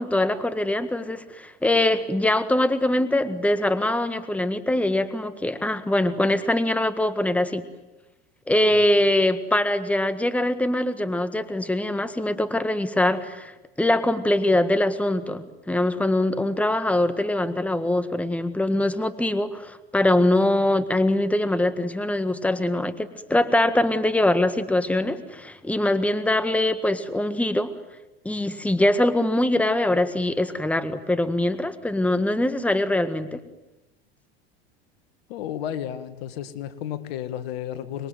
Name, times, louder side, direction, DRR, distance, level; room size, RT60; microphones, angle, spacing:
voice 1, 0.0-7.6 8.5-13.5 13.8-27.7 28.3-33.4, left 1 dB, 5° left, 12 dB, 1.7 m, -23 dB
voice 2, 35.3-38.1, left 10 dB, 70° left, 12 dB, 2.1 m, -32 dB
26.0 x 22.5 x 9.4 m, 1.0 s
hypercardioid pair, 95°, 31 cm